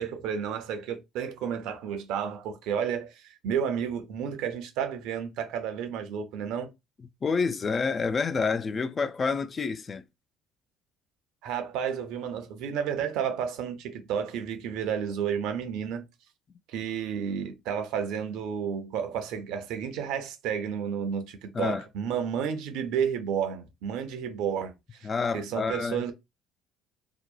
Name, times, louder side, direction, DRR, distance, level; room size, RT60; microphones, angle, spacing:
voice 1, 0.0-6.7 11.4-16.0 16.7-25.1 25.3-26.1, right 8 dB, 65° right, 0.5 m, -31 dB
voice 2, 7.2-10.0 21.5-21.8 25.0-26.0, left 5 dB, 35° left, 0.3 m, -28 dB
2.7 x 2.0 x 2.4 m
hypercardioid pair, 55°, 0 cm